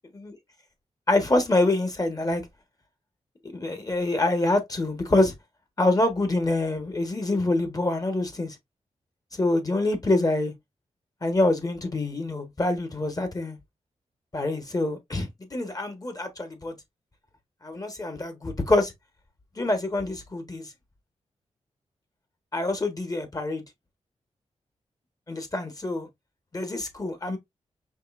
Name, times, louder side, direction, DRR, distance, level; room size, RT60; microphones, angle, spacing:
voice 1, 1.1-2.4 3.5-5.3 5.8-8.5 9.3-10.5 11.2-13.6 14.3-16.7 17.6-18.9 19.6-20.7 22.5-23.6 25.3-26.1 26.5-27.4, left 2 dB, 30° left, 1.4 m, -26 dB
5.4 x 3.2 x 2.6 m
cardioid pair, 70°, 12 cm